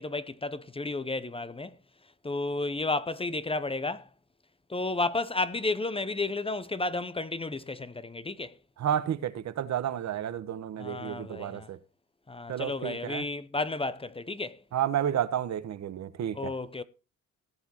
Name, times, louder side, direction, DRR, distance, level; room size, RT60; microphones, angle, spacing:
voice 1, 0.0-1.7 2.2-4.1 4.7-8.5 10.8-11.7 12.3-14.6 16.3-16.8, left 2 dB, 20° left, 0.8 m, -32 dB
voice 2, 8.8-11.8 12.5-13.2 14.7-16.5, right 10 dB, 65° right, 1.2 m, -31 dB
17.5 x 8.0 x 3.0 m
cardioid pair, 90°, 30 cm